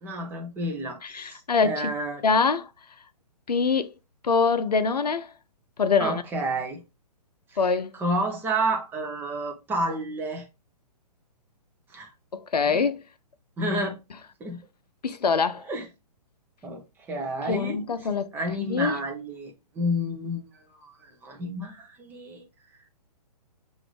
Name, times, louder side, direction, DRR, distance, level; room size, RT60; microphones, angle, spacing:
voice 1, 0.0-2.2 6.0-6.8 7.5-7.6 7.9-10.5 11.9-12.1 12.6-12.8 13.6-14.0 14.4-14.6 15.7-15.9 16.6-16.8 17.1-17.8 18.3-22.4, right 1 dB, 10° right, 0.7 m, -30 dB
voice 2, 1.0-1.9 2.2-2.7 3.5-3.9 4.2-5.3 5.8-6.2 7.6-7.9 12.3-13.0 15.0-15.6 17.5-18.3 18.6-19.0, left 5 dB, 75° left, 0.6 m, -24 dB
5.8 x 2.6 x 3.1 m
figure-of-eight pair, 125°, 21 cm